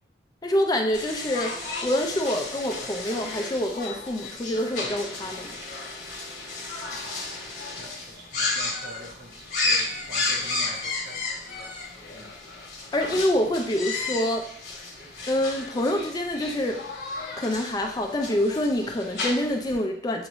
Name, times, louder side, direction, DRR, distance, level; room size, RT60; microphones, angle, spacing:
voice 1, 0.4-1.5 1.8-5.5 12.9-14.5 15.3-16.8 17.4-20.3, left 1 dB, 20° left, 3 dB, 0.4 m, -26 dB
sound 1, 0.9-19.8, left 3 dB, 50° left, 1.3 m, -33 dB
voice 2, 6.8-7.5 7.8-11.2 12.1-12.3, right 1 dB, 50° right, 0 dB, 1.0 m, -44 dB
7.0 x 2.5 x 3.0 m, 0.68 s
head